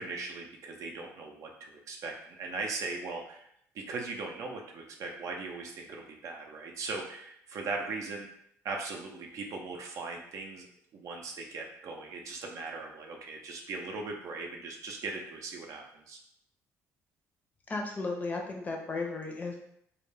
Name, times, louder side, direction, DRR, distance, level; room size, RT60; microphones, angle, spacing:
voice 1, 0.0-3.5 3.7-8.3 8.6-16.2, right 3 dB, 60° right, 1 dB, 0.5 m, -39 dB
voice 2, 17.7-19.6, left 3 dB, 25° left, 1 dB, 0.5 m, -34 dB
2.3 x 2.1 x 3.2 m, 0.72 s
cardioid pair, 95°, 6 cm